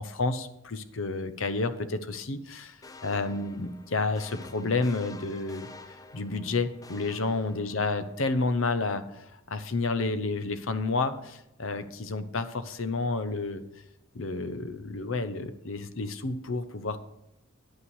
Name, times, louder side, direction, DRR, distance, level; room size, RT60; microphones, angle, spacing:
voice 1, 0.0-2.8 3.0-5.7 6.1-13.6 14.1-17.0, left 3 dB, 70° left, 11 dB, 0.8 m, -30 dB
sound 1, 2.8-8.1, left 3 dB, 15° left, 0.6 m, -48 dB
9.7 x 8.7 x 4.7 m, 0.84 s
head